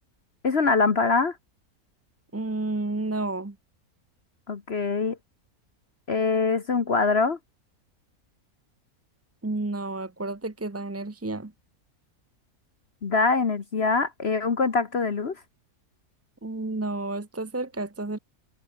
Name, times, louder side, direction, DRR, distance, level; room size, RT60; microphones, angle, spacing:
voice 1, 0.4-1.4 4.5-5.2 6.1-7.4 13.0-15.4, left 4 dB, 45° left, 1.4 m, -23 dB
voice 2, 2.3-3.6 9.4-11.5 16.4-18.2, right 2 dB, 15° right, 0.5 m, -31 dB
omnidirectional pair, 1.6 m